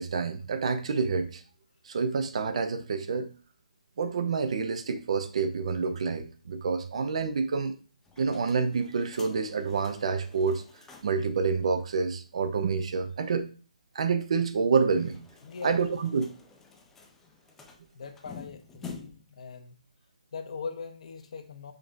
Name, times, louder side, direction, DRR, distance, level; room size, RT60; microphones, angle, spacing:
voice 1, 0.0-1.4 1.9-3.3 4.0-7.7 8.2-10.6 11.0-13.5 13.9-15.2 15.6-16.3, right 5 dB, 55° right, 9 dB, 0.5 m, -28 dB
sound 1, 8.0-11.3 11.6-11.7 12.0-12.1 14.8-19.4, left 5 dB, 10° left, 0.4 m, -49 dB
voice 2, 15.4-15.8 17.9-19.8 20.3-21.7, left 5 dB, 55° left, 7 dB, 0.6 m, -40 dB
5.2 x 2.7 x 2.5 m, 0.37 s
figure-of-eight pair, 145°, 4 cm